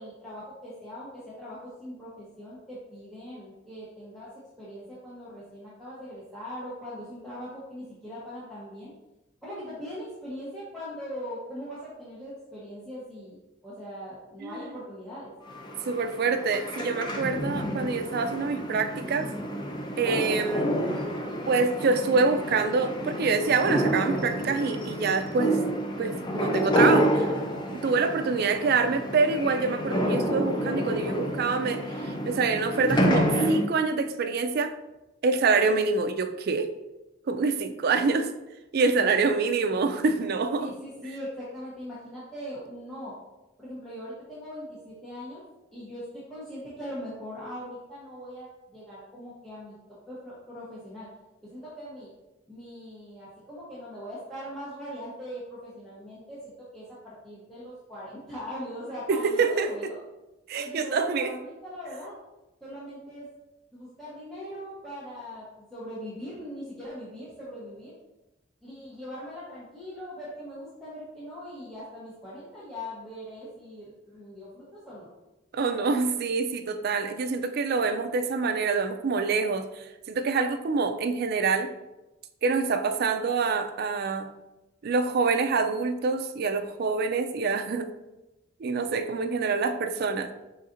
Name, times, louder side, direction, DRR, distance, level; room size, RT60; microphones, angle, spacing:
voice 1, 0.0-4.3 4.6-8.9 9.4-13.3 13.6-15.3 40.6-43.2 43.6-45.4 45.7-49.7 50.1-51.1 51.5-52.1 52.5-60.0 60.6-62.1 62.6-63.3 63.7-67.9 68.6-75.1, equal, ahead, -11 dB, 1.0 m, -40 dB
sound 1, 15.5-33.7, equal, 25° left, 0.5 m, -29 dB
voice 2, 15.9-19.3 20.0-20.7 21.5-25.6 26.0-27.3 27.7-34.8 35.2-36.7 37.3-38.3 38.7-40.7 59.1-59.9 60.5-61.3 75.5-81.7 82.4-84.3 84.8-87.9 88.6-90.3, right 4 dB, 55° right, 7 dB, 0.4 m, -26 dB
4.9 x 4.0 x 2.5 m, 0.99 s
head